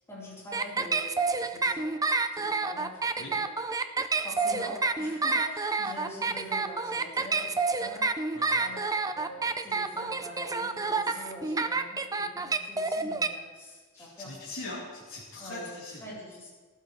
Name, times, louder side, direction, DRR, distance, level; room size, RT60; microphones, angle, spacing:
voice 1, 0.1-2.0 2.3-3.6 4.2-8.1 8.6-8.8 9.1-14.3 15.4-15.7 16.0-16.5, equal, 15° left, -7 dB, 4.0 m, -44 dB
sound 1, 0.5-13.3, right 3 dB, 15° right, 0.4 m, -28 dB
voice 2, 8.3-8.6 14.0-16.1, left 2 dB, 75° left, -8 dB, 3.6 m, -41 dB
18.0 x 12.0 x 3.3 m, 1.4 s
head